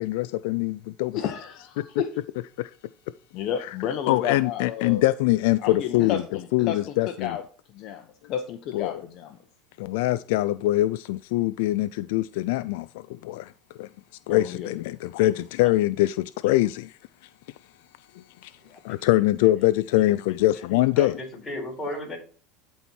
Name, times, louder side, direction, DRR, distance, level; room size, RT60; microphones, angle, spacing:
voice 1, 0.0-1.2 1.8-1.9 2.6-2.7 4.1-6.2 6.5-7.4 8.7-9.0 9.8-13.5 13.8-13.9 14.3-16.9 18.4-18.5 18.8-21.2, left 16 dB, 75° left, 0.3 m, -23 dB
voice 2, 1.1-2.2 3.3-5.0 5.6-7.4 7.7-9.4 14.3-14.7, left 9 dB, 50° left, 0.9 m, -32 dB
voice 3, 18.6-19.1 21.0-22.2, left 1 dB, 10° left, 4.6 m, -35 dB
11.5 x 4.3 x 4.5 m
supercardioid pair, 145°, 0 cm